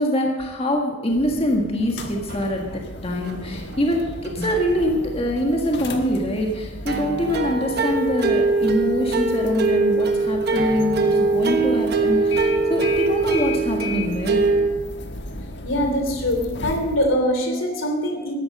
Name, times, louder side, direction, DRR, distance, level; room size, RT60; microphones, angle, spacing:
voice 1, 0.0-14.5, equal, 30° left, 1 dB, 1.6 m, -24 dB
sound 1, 1.1-17.0, left 2 dB, 55° left, 1.3 m, -36 dB
sound 2, 2.0-2.1 2.3-2.6 3.3-3.4 3.7-3.8 4.3-4.8 6.8-14.7, right 3 dB, 50° right, 1.2 m, -22 dB
voice 2, 15.6-18.3, equal, 75° left, 4 dB, 3.0 m, -23 dB
14.0 x 11.0 x 6.5 m, 1.1 s
head